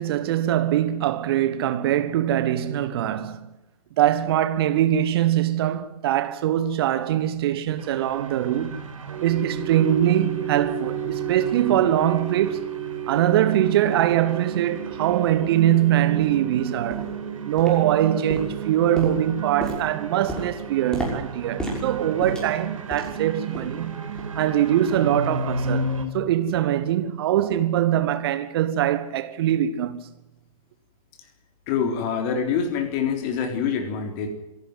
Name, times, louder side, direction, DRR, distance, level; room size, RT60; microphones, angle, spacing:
voice 1, 0.0-3.4 4.0-8.8 9.2-12.6 13.1-17.1 17.5-25.9 26.1-30.0, right 11 dB, 40° right, 1.3 m, -22 dB
sound 1, 7.8-26.1, right 5 dB, 60° right, 4.6 m, -32 dB
sound 2, 14.9-15.0 15.6-15.7 16.2-16.4 16.9-17.2 17.6-18.0 18.3-23.2 23.5-23.8 24.2-24.4 24.9-25.0, equal, 5° left, 6.2 m, -34 dB
voice 2, 31.7-34.3, left 6 dB, 30° left, 4.0 m, -25 dB
26.0 x 12.0 x 9.1 m
figure-of-eight pair, 115°, 19 cm